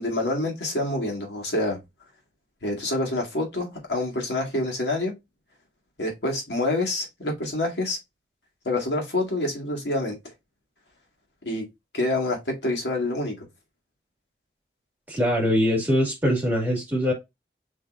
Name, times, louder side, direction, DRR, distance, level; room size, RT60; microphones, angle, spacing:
voice 1, 0.0-1.8 2.6-5.1 6.0-8.0 8.6-10.2 11.5-11.7 11.9-13.5, left 2 dB, 80° left, 2.0 m, -27 dB
voice 2, 15.1-17.1, equal, 10° right, 2.0 m, -22 dB
5.3 x 3.8 x 2.5 m
head